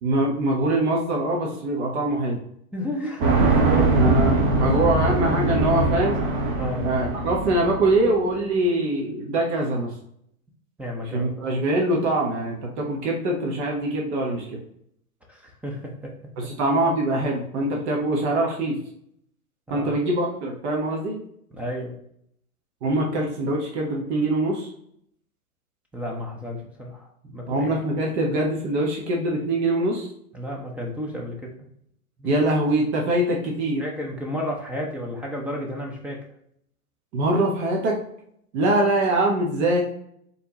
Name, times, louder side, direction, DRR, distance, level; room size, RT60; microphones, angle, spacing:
voice 1, 0.0-2.4 4.0-6.2 6.8-9.9 11.1-14.6 16.4-18.8 19.7-21.2 22.8-24.7 27.5-30.1 32.2-33.8 37.1-38.0 38.5-39.8, right 1 dB, 45° right, -1 dB, 1.2 m, -23 dB
voice 2, 2.7-4.1 4.5-5.1 6.6-6.9 10.8-11.5 15.3-16.1 19.7-19.9 21.5-21.9 25.9-27.8 30.3-31.7 32.2-32.3 33.8-36.2, equal, 5° right, -1 dB, 0.5 m, -32 dB
sound 1, 3.2-8.2, right 2 dB, 30° right, 1.0 m, -22 dB
4.4 x 3.4 x 3.0 m, 0.70 s
hypercardioid pair, 110°, 45 cm